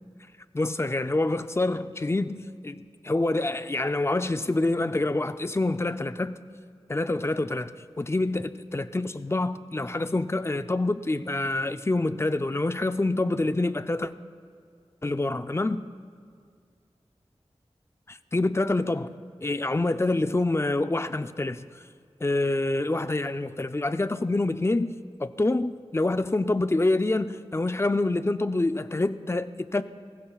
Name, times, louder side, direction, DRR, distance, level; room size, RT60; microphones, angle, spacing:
voice 1, 0.5-6.4 6.9-14.1 15.0-15.8 18.1-19.1 19.4-21.7 22.2-24.9 25.2-29.8, left 2 dB, 25° left, 0.4 m, -26 dB
19.0 x 15.5 x 2.4 m
wide cardioid pair, 70°, 11 cm